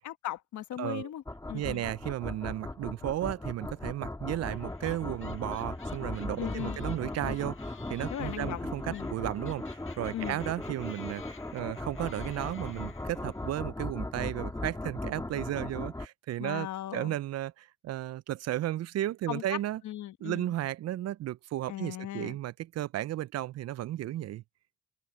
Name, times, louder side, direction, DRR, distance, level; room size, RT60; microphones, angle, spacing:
voice 1, 0.0-1.2 1.5-1.8 6.4-6.8 8.1-8.6 8.9-9.1 10.1-10.4 16.4-17.1 19.3-19.6 19.8-20.5 21.7-22.4, left 12 dB, 70° left, 1.2 m, -37 dB
voice 2, 0.8-1.1 1.5-19.8 20.2-24.4, right 14 dB, 55° right, 0.5 m, -34 dB
sound 1, 1.3-16.1, left 2 dB, 10° left, 1.9 m, -38 dB
sound 2, 4.4-13.5, left 7 dB, 40° left, 1.6 m, -54 dB
open air
cardioid pair, 90°, 30 cm